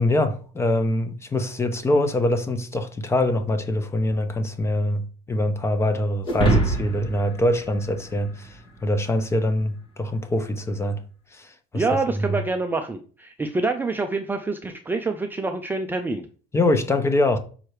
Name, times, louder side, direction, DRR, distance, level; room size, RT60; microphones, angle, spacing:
voice 1, 0.0-5.0 5.3-11.0 11.3-11.8 12.2-12.4 16.5-17.4, left 1 dB, 15° left, 0.8 m, -24 dB
sound 1, 6.2-8.8, right 2 dB, 30° left, 1.7 m, -25 dB
voice 2, 11.7-16.3, right 3 dB, 10° right, 0.4 m, -26 dB
5.6 x 4.7 x 4.8 m
cardioid pair, 150°, 18 cm